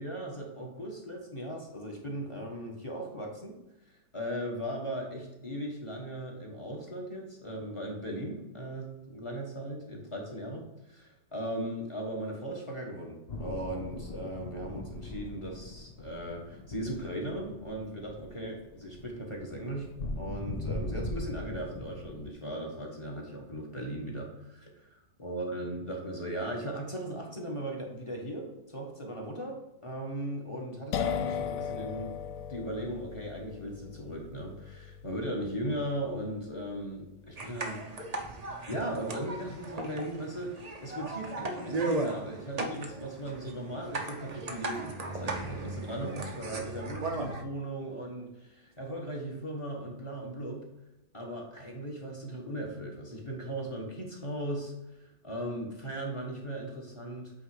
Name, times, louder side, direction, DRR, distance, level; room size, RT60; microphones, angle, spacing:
voice 1, 0.0-3.6 4.1-19.9 20.1-32.2 32.5-37.8 38.7-50.7 51.1-54.7 55.2-57.3, right 1 dB, 20° left, 0 dB, 1.2 m, -38 dB
sound 1, 13.3-22.3, left 2 dB, 55° left, 0.4 m, -40 dB
sound 2, 30.9-38.5, left 8 dB, 70° left, 0.8 m, -38 dB
sound 3, 37.4-47.4, right 2 dB, 75° right, 0.3 m, -37 dB
8.5 x 3.6 x 4.8 m, 0.93 s
omnidirectional pair, 1.9 m